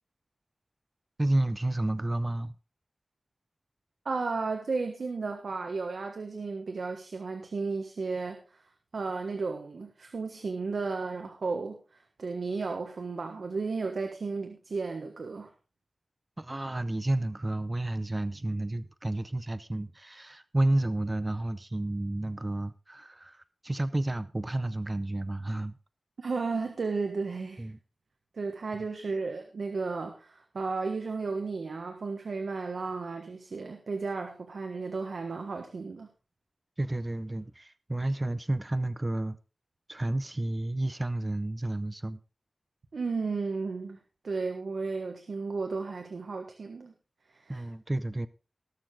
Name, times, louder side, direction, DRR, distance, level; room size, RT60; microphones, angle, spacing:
voice 1, 1.2-2.5 16.4-25.7 27.6-27.8 36.8-39.4 39.9-42.2 47.5-48.3, right 1 dB, 25° right, 0.6 m, -31 dB
voice 2, 4.0-8.6 8.9-15.5 26.2-27.7 28.3-36.1 42.9-46.9 47.3-47.6, right 4 dB, 80° right, 1.4 m, -34 dB
19.0 x 6.9 x 3.7 m
wide cardioid pair, 85°, 0 cm